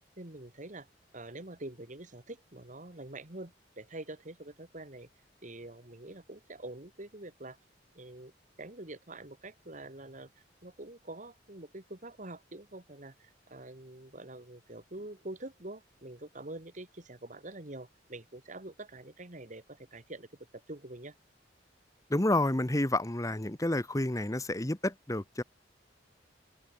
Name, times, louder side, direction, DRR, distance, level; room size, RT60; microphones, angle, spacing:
voice 1, 0.2-0.9 1.1-5.1 5.4-7.6 7.9-8.3 8.6-10.3 10.6-20.3 20.5-21.1, right 2 dB, 45° right, 2.6 m, -45 dB
voice 2, 22.1-25.4, left 1 dB, 20° left, 1.2 m, -29 dB
open air
head